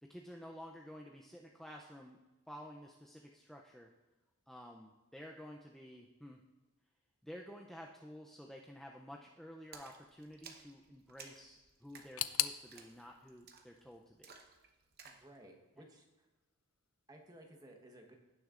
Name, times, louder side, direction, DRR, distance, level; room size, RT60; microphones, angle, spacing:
voice 1, 0.0-2.2 2.5-3.9 4.5-6.4 7.2-14.4, equal, ahead, 0 dB, 0.4 m, -52 dB
Splash splatter, 9.7-15.3, right 5 dB, 45° right, 0.9 m, -57 dB
sound 1, 12.2-15.0 15.3-16.1 16.4-16.5 17.4-17.5, left 14 dB, 70° left, 0.4 m, -41 dB
voice 2, 15.0-16.3 17.1-18.2, right 1 dB, 15° right, 2 dB, 1.1 m, -57 dB
16.5 x 6.4 x 2.5 m, 1.1 s
head